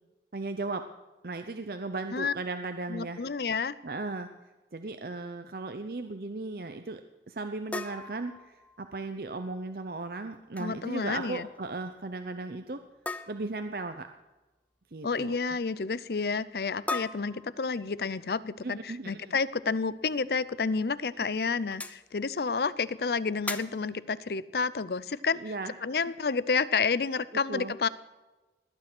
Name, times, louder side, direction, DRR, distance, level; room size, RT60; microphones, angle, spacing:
voice 1, 0.3-0.9 1.2-3.2 3.8-4.3 4.7-7.0 7.3-12.8 13.3-14.1 14.9-15.3 18.6-19.4 25.4-25.7 27.5-27.7, right 3 dB, 55° right, 7 dB, 0.7 m, -36 dB
voice 2, 2.9-3.7 10.6-11.5 15.0-25.5 25.8-27.9, left 4 dB, 60° left, 18 dB, 0.6 m, -30 dB
sound 1, 7.7-9.1 10.3-10.7 11.0-11.3 11.5-11.6 13.1-13.7 16.9-18.0 20.1-20.2 20.7-20.8 21.7-22.0 23.5-23.9, left 2 dB, 10° left, 0.5 m, -38 dB
19.5 x 9.7 x 6.1 m, 1.1 s
head